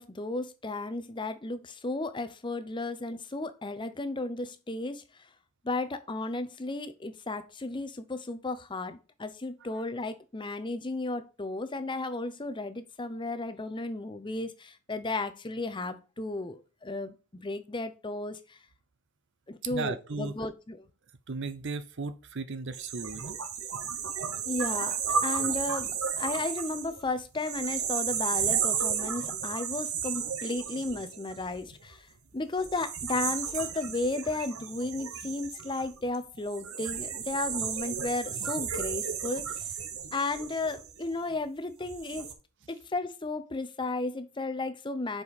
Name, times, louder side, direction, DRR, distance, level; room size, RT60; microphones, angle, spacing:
voice 1, 0.0-5.0 5.6-18.6 19.5-20.8 24.5-32.1 32.3-39.5 40.1-42.3 42.7-45.2, left 2 dB, 20° left, 0.6 m, -34 dB
voice 2, 19.7-20.3 21.3-23.4, right 3 dB, 55° right, 0.6 m, -35 dB
sound 1, 22.7-31.9 32.6-41.3 41.8-42.3, right 7 dB, 70° right, 1.1 m, -33 dB
7.2 x 5.2 x 4.1 m
head